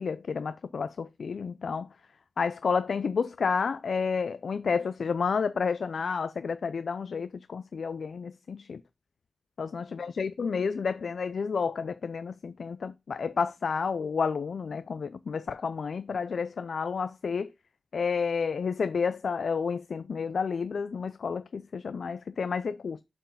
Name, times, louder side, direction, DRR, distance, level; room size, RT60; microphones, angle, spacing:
voice 1, 0.0-1.9 2.4-8.8 9.6-17.5 17.9-23.0, left 5 dB, 75° left, 0.4 m, -30 dB
7.2 x 4.5 x 5.5 m
wide cardioid pair, 110°, 0 cm